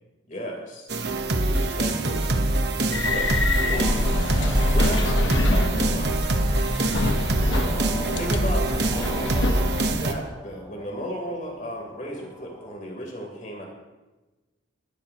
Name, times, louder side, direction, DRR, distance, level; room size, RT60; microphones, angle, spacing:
voice 1, 0.3-0.9 1.4-2.7 3.1-3.4 3.7-4.1 4.7-6.2 7.4-7.8 8.2-8.7 9.0-13.7, equal, 40° left, 0 dB, 3.6 m, -35 dB
sound 1, 0.9-10.1, right 2 dB, 60° right, 1.1 m, -25 dB
sound 2, 2.9-9.9, left 1 dB, 75° left, 1.1 m, -25 dB
sound 3, 3.7-12.7, equal, 25° left, 4.5 m, -40 dB
20.0 x 12.5 x 3.0 m, 1.1 s
head